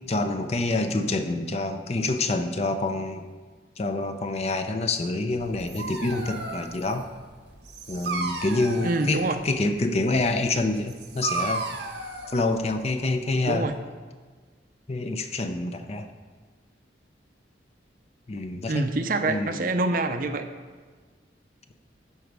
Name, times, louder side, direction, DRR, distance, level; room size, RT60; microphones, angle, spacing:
voice 1, 0.1-3.3 3.8-7.1 7.9-11.6 12.3-13.7 14.9-16.1 18.3-18.9 19.3-19.6, left 2 dB, 35° left, 7 dB, 0.5 m, -27 dB
Dog, 5.4-13.2, right 3 dB, 75° right, 1.1 m, -35 dB
voice 2, 8.8-9.4 13.5-13.7 18.7-20.5, right 2 dB, 50° right, 8 dB, 0.6 m, -26 dB
12.0 x 5.0 x 4.7 m, 1.5 s
head